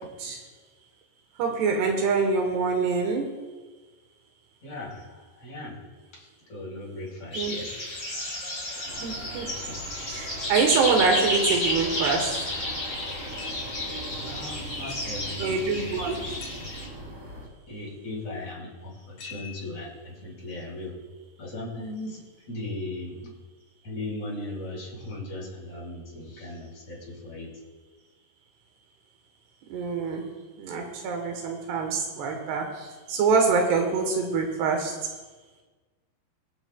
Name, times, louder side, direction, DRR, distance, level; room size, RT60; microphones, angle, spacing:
voice 1, 1.4-3.3 7.3-7.5 9.0-9.5 10.1-12.3 15.4-16.2 29.7-30.2 30.6-34.9, right 4 dB, 80° right, 2 dB, 3.2 m, -25 dB
voice 2, 4.6-5.8 6.1-7.7 8.8-8.9 14.2-16.0 17.7-20.9 21.4-22.2 22.5-23.2 23.8-27.5, left 2 dB, 40° left, -3 dB, 5.2 m, -38 dB
sound 1, 7.3-16.8, left 1 dB, 25° left, 3.8 m, -32 dB
sound 2, 8.8-17.5, right 1 dB, 30° right, 3.0 m, -40 dB
sound 3, 13.4-13.8 14.9-15.2 16.4-16.8 19.2-19.8, left 7 dB, 60° left, 3.3 m, -44 dB
25.5 x 8.9 x 2.3 m, 1.3 s
omnidirectional pair, 4.7 m